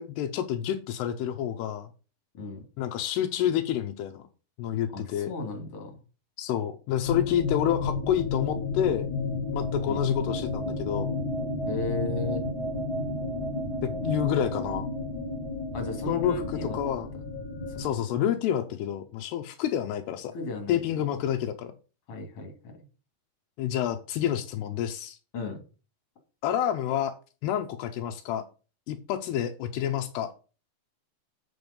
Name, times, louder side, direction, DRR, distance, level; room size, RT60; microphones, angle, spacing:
voice 1, 0.0-1.9 2.8-4.3 4.6-5.3 6.4-9.1 9.5-11.1 13.8-14.9 16.1-16.4 16.7-17.1 17.8-20.3 20.7-21.7 23.6-25.2 26.4-27.1 27.4-28.5 28.9-30.3, left 10 dB, 80° left, 6 dB, 2.8 m, -28 dB
voice 2, 4.9-6.0 9.8-10.1 11.7-12.4 15.7-16.8 17.7-17.8 20.3-20.8 22.1-22.7 25.3-25.6, left 2 dB, 40° left, 3 dB, 3.2 m, -35 dB
sound 1, 7.0-17.9, left 3 dB, 60° left, 1.4 m, -31 dB
7.9 x 7.5 x 5.3 m, 0.35 s
omnidirectional pair, 4.7 m